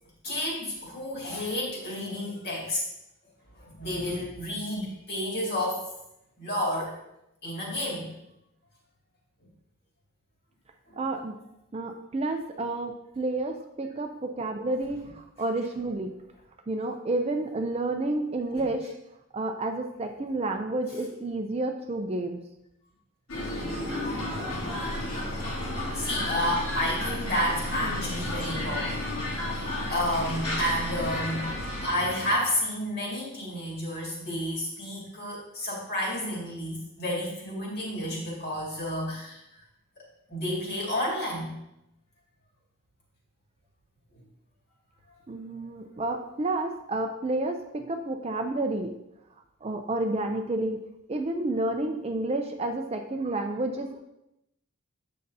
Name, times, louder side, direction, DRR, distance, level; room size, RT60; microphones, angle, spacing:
voice 1, 0.2-2.8 3.5-5.8 6.4-6.9 7.4-8.1 10.9-11.0 23.6-23.8 25.0-25.1 25.9-29.1 29.5-31.4 31.8-39.4 40.3-41.5, left 1 dB, 45° left, -4 dB, 2.2 m, -31 dB
voice 2, 11.0-11.4 11.7-16.1 16.7-18.9 19.3-22.4 45.3-49.0 49.6-50.8 51.1-54.0, right 2 dB, 25° right, 5 dB, 0.4 m, -30 dB
sound 1, 23.3-32.6, left 1 dB, 80° left, 2.6 m, -32 dB
8.8 x 6.5 x 2.7 m, 0.86 s
head